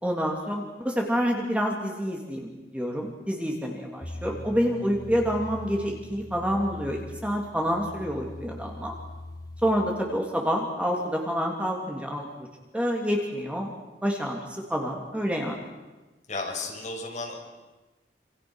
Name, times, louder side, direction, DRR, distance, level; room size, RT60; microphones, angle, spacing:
voice 1, 0.0-8.9 9.6-12.5 12.7-13.7 14.0-15.7, equal, 5° right, 0 dB, 3.1 m, -28 dB
sound 1, 4.0-9.7, left 1 dB, 20° left, 2.3 m, -41 dB
voice 2, 16.3-17.5, left 3 dB, 45° left, 0 dB, 6.6 m, -34 dB
28.0 x 27.5 x 6.5 m, 1.2 s
head